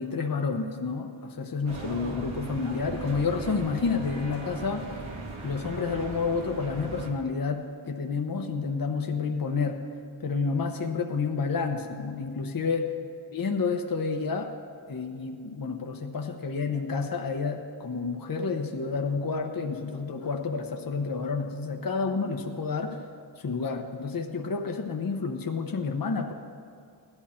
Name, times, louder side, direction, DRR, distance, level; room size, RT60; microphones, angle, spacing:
voice 1, 0.0-4.9 5.4-9.8 10.2-12.9 13.3-14.6 14.9-23.0 23.4-26.3, left 4 dB, 45° left, 4 dB, 0.9 m, -30 dB
sound 1, 1.7-7.1, right 3 dB, 85° right, 1.8 m, -38 dB
16.5 x 11.5 x 4.3 m, 2.4 s
wide cardioid pair, 95°, 48 cm